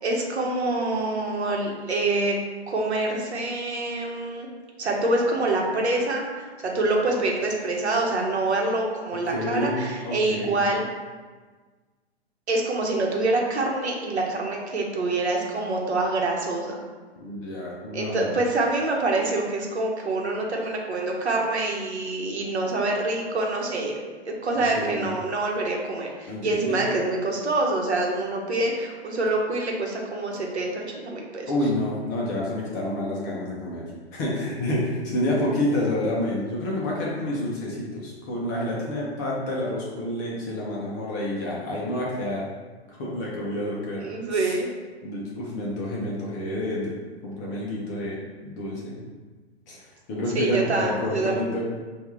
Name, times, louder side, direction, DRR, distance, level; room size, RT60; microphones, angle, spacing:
voice 1, 0.0-2.4 2.7-4.5 4.8-10.8 12.5-16.8 17.9-24.0 24.3-31.5 44.0-44.7 50.3-51.4, right 2 dB, 75° right, 0 dB, 1.0 m, -26 dB
voice 2, 9.3-10.6 17.2-18.4 24.8-25.1 26.3-26.8 31.5-33.8 34.1-42.4 42.9-44.6 45.0-46.9 47.2-49.0 49.7-51.7, left 1 dB, 15° left, -4 dB, 0.4 m, -29 dB
5.2 x 2.4 x 3.0 m, 1.4 s
figure-of-eight pair, 120°, 33 cm